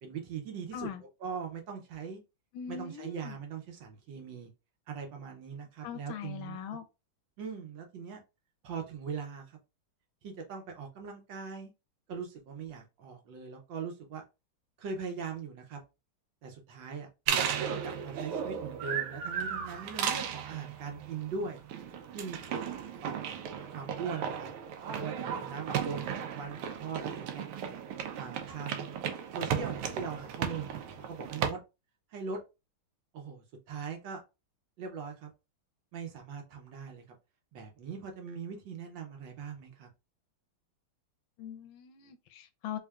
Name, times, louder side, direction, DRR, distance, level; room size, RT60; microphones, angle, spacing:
voice 1, 0.0-0.9 1.2-2.2 2.7-4.5 4.9-6.8 7.4-8.2 8.6-9.6 10.2-11.7 12.1-14.2 14.8-15.8 16.4-17.1 17.7-21.6 22.1-22.7 23.0-23.4 23.7-24.5 25.0-27.5 28.2-29.0 29.3-31.6 32.1-32.4 33.1-34.2 34.8-35.3 35.9-37.2 37.5-39.9, right 5 dB, 70° right, 1.5 m, -41 dB
voice 2, 0.7-1.0 2.5-3.4 5.8-6.8 41.4-42.8, left 8 dB, 75° left, 1.3 m, -41 dB
sound 1, 17.3-31.5, right 8 dB, 90° right, 1.5 m, -35 dB
3.6 x 3.4 x 2.3 m
omnidirectional pair, 2.3 m